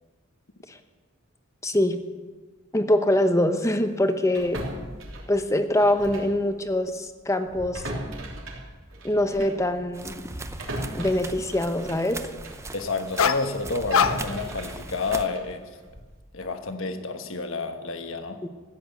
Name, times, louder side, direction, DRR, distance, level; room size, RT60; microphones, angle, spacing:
voice 1, 1.6-2.0 2.7-4.6 5.3-7.8 9.0-10.2 10.9-12.2 18.4-18.5, left 1 dB, 15° left, 8 dB, 0.9 m, -23 dB
sound 1, 4.3-6.4 6.7-6.9 7.4-12.7 13.1-16.2, right 1 dB, 75° right, 3.3 m, -38 dB
sound 2, 9.9-15.3, right 3 dB, 15° right, 0.6 m, -40 dB
voice 2, 12.7-15.7 16.3-18.4, left 3 dB, 70° left, 6 dB, 1.3 m, -30 dB
sound 3, 13.2-13.5 13.9-14.5 15.0-15.3, left 6 dB, 90° left, 0.7 m, -24 dB
15.5 x 8.8 x 8.2 m, 1.4 s
head